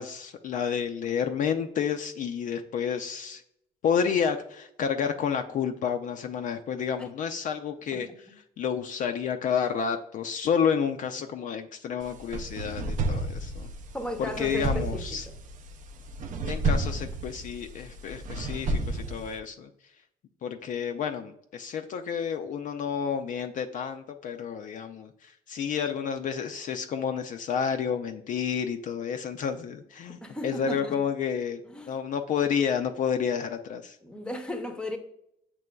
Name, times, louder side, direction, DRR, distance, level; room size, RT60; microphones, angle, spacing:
voice 1, 0.0-3.4 3.8-8.1 8.6-13.7 14.2-15.3 16.5-19.7 20.4-30.2 30.4-31.6 31.9-34.0, left 7 dB, 50° left, 0.4 m, -30 dB
sound 1, 12.0-19.4, right 2 dB, 50° right, 0.5 m, -32 dB
voice 2, 13.9-15.3 30.1-31.0 31.7-32.0 34.0-35.0, left 1 dB, 5° left, 0.7 m, -36 dB
7.5 x 3.0 x 2.2 m
cardioid pair, 110°, 17 cm